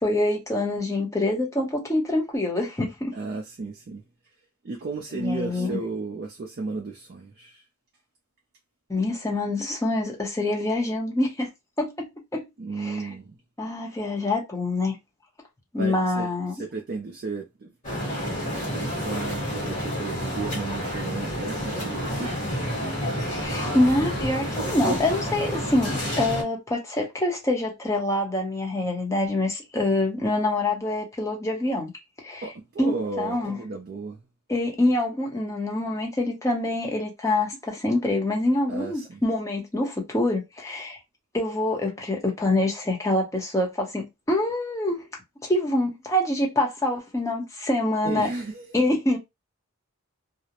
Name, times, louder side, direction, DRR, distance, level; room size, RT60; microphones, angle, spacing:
voice 1, 0.0-3.1 5.1-5.8 8.9-11.5 11.8-12.5 12.8-13.1 13.6-15.0 15.7-16.6 23.4-31.9 32.2-32.4 32.8-33.6 34.5-41.0 41.3-45.1 45.4-48.3 48.7-49.2, left 1 dB, 15° left, 0.7 m, -25 dB
voice 2, 3.1-4.0 4.6-7.6 12.6-13.4 15.8-16.3 16.5-17.7 18.9-22.3 32.4-34.2 38.7-39.2 48.0-48.8, right 3 dB, 45° right, 0.4 m, -34 dB
sound 1, 17.8-26.4, equal, 35° left, 1.3 m, -29 dB
2.4 x 2.0 x 2.8 m
head